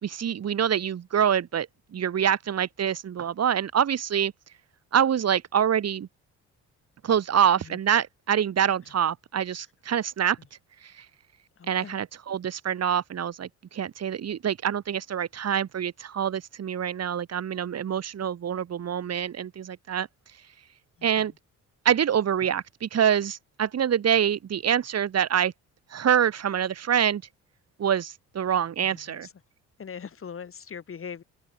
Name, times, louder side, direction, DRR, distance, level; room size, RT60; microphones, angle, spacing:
voice 1, 0.0-4.3 4.9-6.1 7.0-10.4 10.8-11.1 11.7-20.1 21.0-21.3 21.9-25.5 25.9-27.2 27.8-29.3, right 9 dB, 55° right, 3.3 m, -25 dB
voice 2, 11.6-12.0 21.0-21.1 28.9-29.3 29.8-31.2, left 7 dB, 45° left, 4.9 m, -41 dB
cardioid pair, 90°, 30 cm